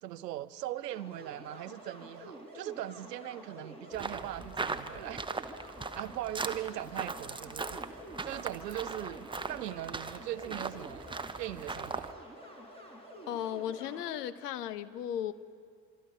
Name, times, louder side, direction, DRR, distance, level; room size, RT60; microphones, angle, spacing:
voice 1, 0.0-5.3 5.9-7.8 8.2-11.1 11.4-12.1, right 14 dB, 70° right, 17 dB, 0.7 m, -40 dB
sound 1, 0.9-14.2, equal, 10° left, 5.8 m, -49 dB
sound 2, 3.9-12.1, right 3 dB, 10° right, 1.0 m, -39 dB
voice 2, 13.3-15.3, left 10 dB, 65° left, 14 dB, 1.0 m, -36 dB
26.0 x 25.0 x 5.4 m, 2.3 s
figure-of-eight pair, 65°, 49 cm